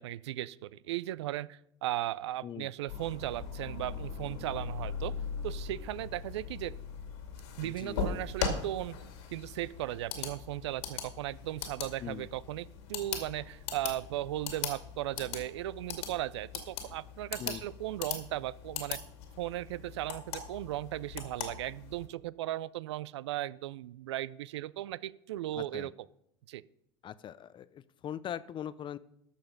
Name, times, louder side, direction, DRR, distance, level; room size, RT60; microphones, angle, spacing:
voice 1, 0.0-5.1 5.4-6.8 7.6-9.0 9.3-19.0 19.4-25.9 26.5-26.6, right 14 dB, 75° right, 20 dB, 0.4 m, -37 dB
sound 1, 2.9-22.1, left 6 dB, 70° left, 2.4 m, -40 dB
voice 2, 7.6-8.0 12.0-12.3 17.4-17.6 25.5-25.9 27.0-29.0, left 9 dB, 35° left, 17 dB, 0.6 m, -41 dB
13.0 x 6.8 x 5.3 m, 0.76 s
hypercardioid pair, 80°, 15 cm